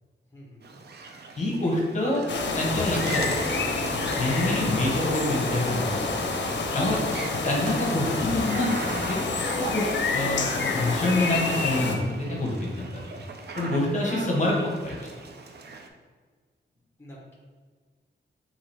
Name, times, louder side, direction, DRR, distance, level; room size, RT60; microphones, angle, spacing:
sound 1, 0.6-15.9, right 3 dB, 60° right, 0.5 m, -39 dB
voice 1, 1.4-2.2 2.6-3.5 4.2-6.1 6.7-7.0 7.4-9.2 9.6-13.0 13.6-14.6 14.8-15.0, left 1 dB, 40° left, -3 dB, 1.0 m, -27 dB
sound 2, 2.3-12.0, left 3 dB, 65° left, 0.6 m, -28 dB
voice 2, 17.0-17.3, equal, 10° left, -3 dB, 0.9 m, -47 dB
5.6 x 2.8 x 3.4 m, 1.5 s
wide cardioid pair, 160°, 20 cm